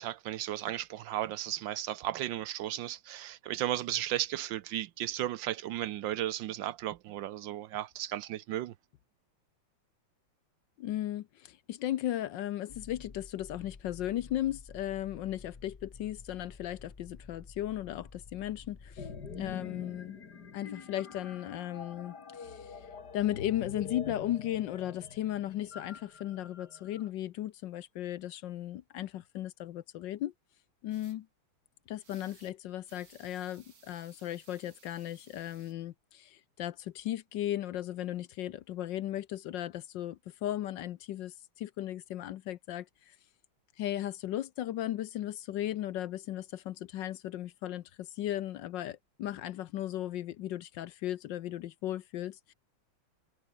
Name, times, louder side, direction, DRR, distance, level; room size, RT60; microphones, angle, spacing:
voice 1, 0.0-8.7, right 13 dB, 70° right, 1.3 m, -35 dB
voice 2, 10.8-19.1 19.3-20.2 20.5-22.9 23.1-30.3 30.8-31.3 31.9-43.2 43.8-52.5, left 13 dB, 70° left, 1.3 m, -36 dB
sound 1, 12.7-19.5, left 4 dB, 35° left, 0.5 m, -51 dB
sound 2, 19.0-27.1, left 5 dB, 50° left, 2.8 m, -45 dB
sound 3, 30.9-31.2 32.0-32.5 32.8-35.7, right 5 dB, 45° right, 2.6 m, -61 dB
omnidirectional pair, 2.3 m